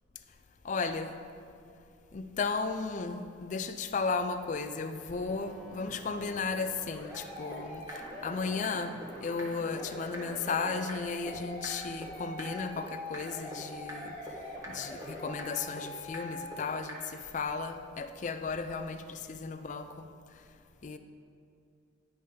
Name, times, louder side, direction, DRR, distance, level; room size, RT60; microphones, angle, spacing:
voice 1, 0.6-1.1 2.1-7.8 8.2-14.1 14.7-19.9 20.8-21.0, left 4 dB, 40° left, 0.4 m, -34 dB
sound 1, 5.1-16.4, left 1 dB, 10° left, 1.9 m, -45 dB
sound 2, 7.1-7.2 7.5-7.6 7.9-8.0 8.3-8.4 8.6-8.7 9.0-9.1 9.4-9.5 9.8-9.9 10.1-10.2 10.5-10.6 10.9-11.0 11.3-11.4 11.6-11.7 12.0-12.1 12.4-12.5 12.8-12.9 13.1-13.2 13.5-13.6 13.9-14.0 14.3-14.4 14.6-14.7 15.0-15.1 15.4-15.5 15.8-15.9 16.1-16.2 16.5-16.6 16.9-17.0, equal, 15° right, 1.2 m, -43 dB
9.7 x 5.5 x 5.0 m
head